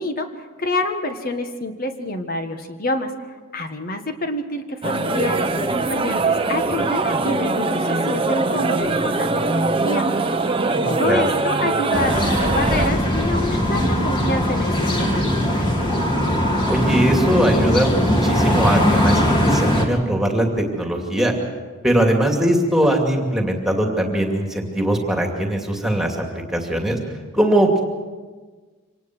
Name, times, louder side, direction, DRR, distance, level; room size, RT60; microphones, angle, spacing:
voice 1, 0.0-10.1 10.8-15.7, left 1 dB, 40° left, 6 dB, 1.6 m, -27 dB
sound 1, 4.8-12.9, right 3 dB, 25° right, 0.9 m, -22 dB
voice 2, 10.8-11.3 16.7-21.3 21.8-27.0 27.3-27.8, right 1 dB, ahead, 1 dB, 2.6 m, -20 dB
sound 2, 11.9-19.9, equal, 20° left, 2.7 m, -20 dB
25.5 x 19.0 x 6.2 m, 1.4 s
head